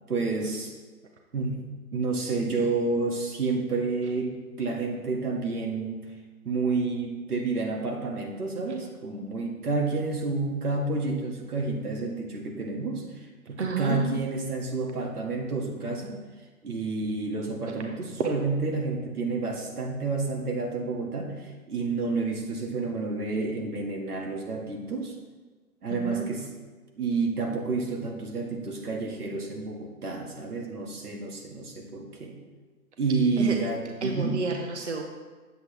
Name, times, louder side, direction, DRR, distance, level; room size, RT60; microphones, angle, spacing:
voice 1, 0.1-0.7 1.3-1.6 1.9-6.1 6.4-16.2 16.6-25.1 25.8-26.5 27.0-32.4 33.0-34.5, right 3 dB, 90° right, 0 dB, 2.2 m, -30 dB
voice 2, 13.6-14.2 18.2-18.3 25.9-26.3 33.4-33.6 34.0-35.0, right 3 dB, 50° right, 2 dB, 0.9 m, -30 dB
8.9 x 8.0 x 3.4 m, 1.3 s
hypercardioid pair, 175°, 44 cm